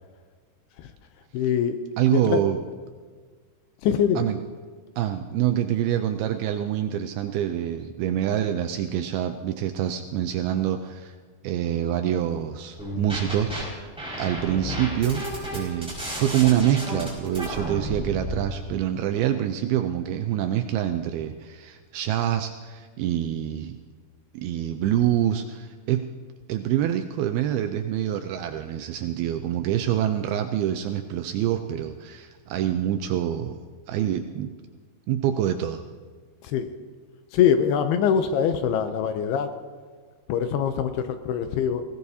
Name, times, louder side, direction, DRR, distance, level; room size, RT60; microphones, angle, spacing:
voice 1, 1.3-1.8 2.1-2.4 3.8-4.2 36.4-36.7 37.3-39.5 40.3-41.8, left 8 dB, 80° left, 9 dB, 2.4 m, -23 dB
voice 2, 2.0-2.6 4.2-4.4 5.0-11.2 11.4-13.9 14.2-15.3 15.5-23.8 24.3-26.0 26.5-33.6 33.9-34.5 35.1-35.8, right 11 dB, 80° right, 6 dB, 2.2 m, -26 dB
sound 1, 12.8-13.6 14.0-18.4, equal, ahead, 4.8 m, -32 dB
20.5 x 17.5 x 2.8 m, 1.5 s
omnidirectional pair, 4.9 m